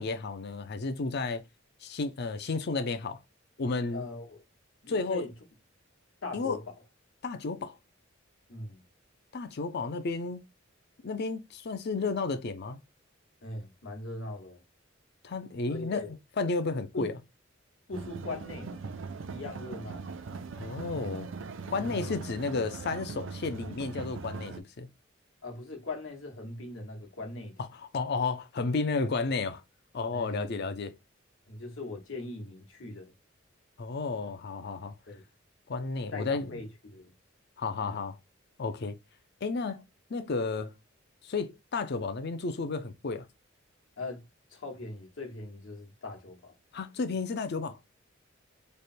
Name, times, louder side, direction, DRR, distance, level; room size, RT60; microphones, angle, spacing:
voice 1, 0.0-1.4 1.8-3.2 3.6-4.0 4.9-5.2 6.3-6.6 7.2-7.7 9.3-10.4 11.0-12.8 15.2-17.1 20.6-21.3 21.7-24.9 27.6-29.6 29.9-30.9 33.8-34.9 35.7-36.6 37.6-38.2 38.6-38.9 39.4-39.8 40.1-40.7 41.2-43.3 46.7-47.8, left 4 dB, 55° left, 0.5 m, -32 dB
voice 2, 3.9-4.4 4.8-5.3 6.2-6.6 8.5-8.8 13.4-14.6 15.7-16.1 16.9-17.2 17.9-18.8 19.3-20.0 21.7-22.2 25.4-27.5 29.0-29.3 30.1-30.8 31.5-33.1 35.1-35.2 36.1-37.1 37.8-38.1 44.0-44.2 44.5-46.5, left 2 dB, 75° left, 1.3 m, -40 dB
sound 1, 17.9-24.6, right 4 dB, 70° right, 0.5 m, -40 dB
3.3 x 2.2 x 4.2 m
head